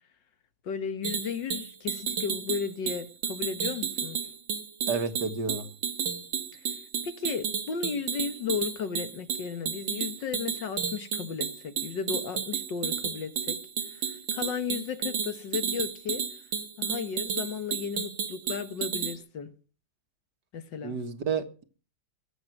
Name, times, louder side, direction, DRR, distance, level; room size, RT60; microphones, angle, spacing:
voice 1, 0.6-4.2 6.5-6.6 7.0-13.6 13.9-16.2 16.8-19.5 20.5-21.0, left 6 dB, 80° left, 2.1 m, -34 dB
sound 1, 1.0-19.2, right 7 dB, 85° right, 2.2 m, -32 dB
voice 2, 4.9-5.7 20.8-21.6, right 5 dB, 65° right, 2.1 m, -30 dB
22.5 x 8.1 x 6.1 m
omnidirectional pair, 2.0 m